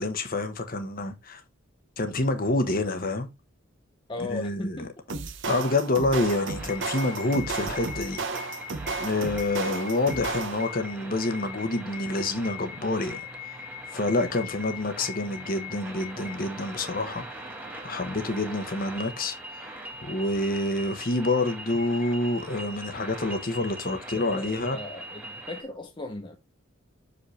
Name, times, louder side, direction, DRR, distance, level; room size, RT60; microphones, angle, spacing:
voice 1, 0.0-1.4 2.0-3.3 4.3-4.9 5.5-8.5 9.0-13.3 13.9-17.2 17.8-19.4 19.6-19.7 20.0-24.8, left 2 dB, 45° left, 1.1 m, -27 dB
voice 2, 4.1-5.2 24.2-26.4, left 2 dB, 25° left, 0.7 m, -37 dB
sound 1, 5.1-10.8, right 4 dB, 65° right, 0.9 m, -33 dB
sound 2, 6.5-25.6, left 1 dB, 10° right, 1.3 m, -40 dB
6.5 x 5.1 x 3.1 m
head